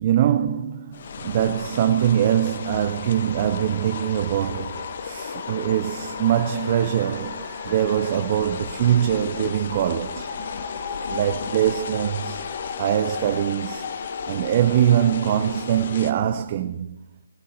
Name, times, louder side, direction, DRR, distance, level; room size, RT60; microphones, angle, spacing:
voice 1, 0.0-10.3 11.1-12.4 12.8-13.9 14.3-17.0, right 10 dB, 35° right, 0.5 m, -23 dB
sound 1, 0.9-16.1, left 6 dB, 50° left, 0.9 m, -33 dB
16.5 x 9.4 x 4.3 m
figure-of-eight pair, 145°, 0 cm